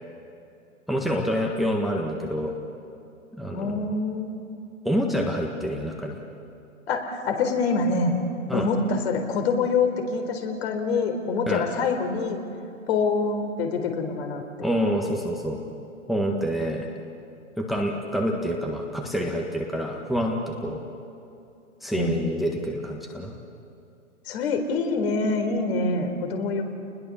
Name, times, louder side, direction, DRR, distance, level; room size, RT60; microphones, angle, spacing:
voice 1, 0.9-2.5 3.4-3.9 4.8-6.2 8.5-8.7 11.5-11.6 14.6-15.6 16.1-16.9 17.6-20.8 21.8-23.3, equal, ahead, 0 dB, 1.6 m, -27 dB
voice 2, 3.5-4.6 6.9-8.2 8.5-12.4 12.9-14.4 21.9-22.2 24.3-26.6, left 4 dB, 50° left, 4 dB, 4.1 m, -25 dB
30.0 x 21.0 x 7.1 m, 2.7 s
hypercardioid pair, 125°, 39 cm